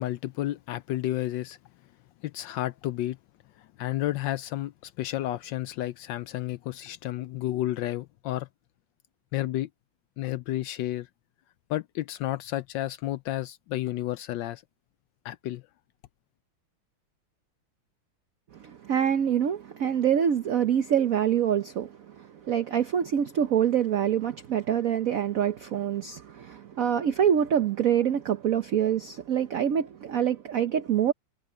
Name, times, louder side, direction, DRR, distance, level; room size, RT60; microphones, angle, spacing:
voice 1, 0.0-1.6 2.2-3.2 3.8-8.5 9.3-9.7 10.2-11.1 11.7-14.6 15.2-15.6, left 14 dB, 75° left, 1.1 m, -31 dB
voice 2, 18.6-31.1, right 9 dB, 55° right, 1.0 m, -25 dB
omnidirectional pair, 2.2 m